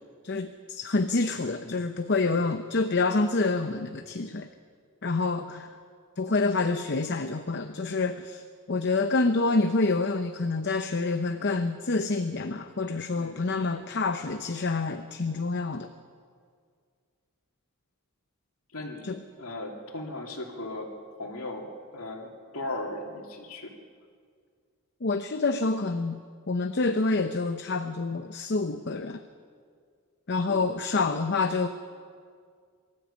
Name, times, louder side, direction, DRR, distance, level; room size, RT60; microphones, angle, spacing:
voice 1, 0.2-4.5 5.0-5.7 6.2-8.4 8.7-15.9 19.0-19.2 25.0-26.2 26.5-29.2 30.3-31.7, left 3 dB, 50° left, 8 dB, 0.7 m, -27 dB
voice 2, 13.2-13.5 18.7-23.7 30.3-30.6, left 2 dB, 80° left, 1 dB, 2.9 m, -38 dB
23.5 x 14.0 x 8.5 m, 2.1 s
head